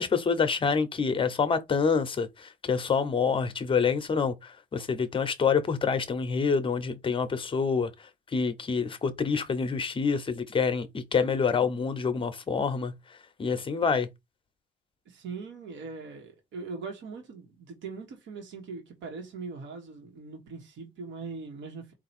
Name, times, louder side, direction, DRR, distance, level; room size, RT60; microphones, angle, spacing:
voice 1, 0.0-7.9 8.3-12.9 13.4-14.1, left 5 dB, 30° left, 0.7 m, -27 dB
voice 2, 15.0-21.9, right 4 dB, 90° right, 1.4 m, -41 dB
4.5 x 2.5 x 4.2 m
cardioid pair, 155°, 19 cm